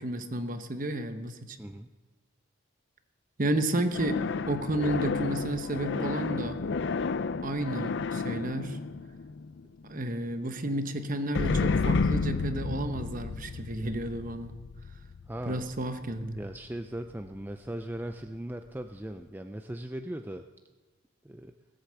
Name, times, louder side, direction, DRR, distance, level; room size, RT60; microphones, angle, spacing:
voice 1, 0.0-1.6 3.4-4.2 4.5-6.6 7.4-8.8 9.9-14.5 15.4-16.4, right 1 dB, 40° right, 8 dB, 1.0 m, -31 dB
sound 1, 3.9-9.9 11.3-16.7, left 4 dB, 60° left, 0.5 m, -31 dB
voice 2, 15.3-15.6 16.4-20.4 21.2-21.5, right 1 dB, 10° right, 6 dB, 0.4 m, -38 dB
19.0 x 8.0 x 7.0 m, 1.2 s
head